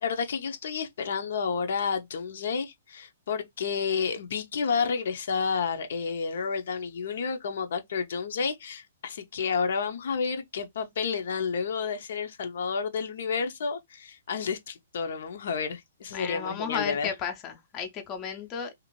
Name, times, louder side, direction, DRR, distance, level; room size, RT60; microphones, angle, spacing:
voice 1, 0.0-17.1, left 5 dB, 70° left, 0.6 m, -30 dB
voice 2, 16.1-18.7, left 7 dB, 25° left, 0.6 m, -33 dB
2.6 x 2.4 x 3.0 m
hypercardioid pair, 150°, 0 cm